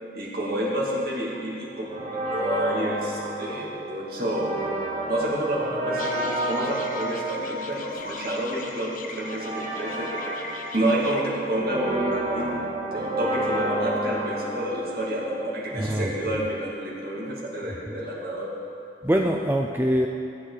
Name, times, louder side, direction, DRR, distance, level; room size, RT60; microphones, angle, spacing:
voice 1, 0.1-1.9 2.3-4.6 5.1-10.3 10.7-12.6 12.9-18.5 19.2-19.3, right 1 dB, 55° right, -5 dB, 2.2 m, -29 dB
sound 1, 1.9-15.7, right 1 dB, 40° right, 1.5 m, -31 dB
sound 2, 6.0-11.2, left 4 dB, 50° left, 0.7 m, -41 dB
voice 2, 15.8-16.4 19.0-20.1, equal, 10° right, 1 dB, 0.4 m, -24 dB
15.0 x 8.2 x 3.9 m, 2.7 s
head